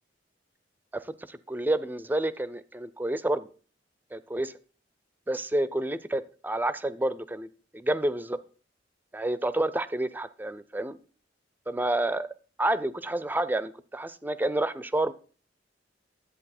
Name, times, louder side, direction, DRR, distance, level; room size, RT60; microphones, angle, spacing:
voice 1, 0.9-3.5 4.1-4.5 5.3-7.5 7.7-8.4 9.1-11.0 11.7-12.3 12.6-15.1, right 1 dB, 10° right, 16 dB, 0.4 m, -29 dB
11.0 x 8.4 x 4.2 m, 0.39 s
head